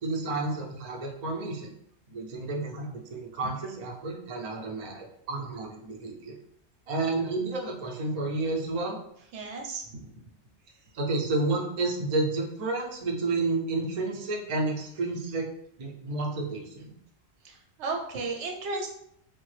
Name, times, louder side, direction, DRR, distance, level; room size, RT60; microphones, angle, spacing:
voice 1, 0.0-1.7 2.1-6.4 6.9-9.0 10.9-15.5 15.8-16.9, right 3 dB, 45° right, -1 dB, 0.6 m, -31 dB
voice 2, 9.3-9.8 17.4-17.5 17.8-18.9, right 3 dB, 80° right, 1 dB, 0.9 m, -33 dB
3.3 x 2.1 x 3.1 m, 0.73 s
omnidirectional pair, 1.1 m